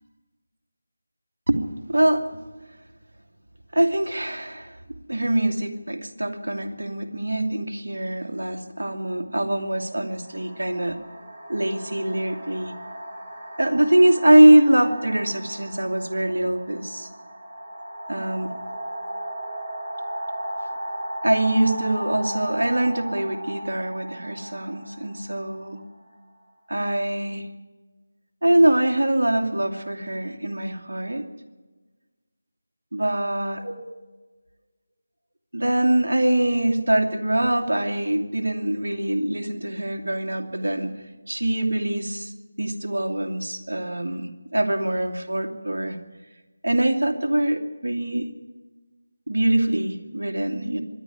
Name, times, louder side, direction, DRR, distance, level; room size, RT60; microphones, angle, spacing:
voice 1, 1.9-2.4 3.7-4.8 5.1-11.0 11.5-12.7 13.6-17.1 18.1-18.5 21.2-25.8 26.7-27.5 28.4-31.3 32.9-33.8 35.5-40.9 41.3-42.3 42.6-46.0 46.6-48.3 49.3-50.8, right 1 dB, 65° right, 3 dB, 2.5 m, -23 dB
sound 1, 8.6-8.8 9.7-26.4, right 1 dB, 25° right, 7.0 m, -36 dB
24.5 x 11.0 x 9.8 m, 1.3 s
figure-of-eight pair, 160°, 0 cm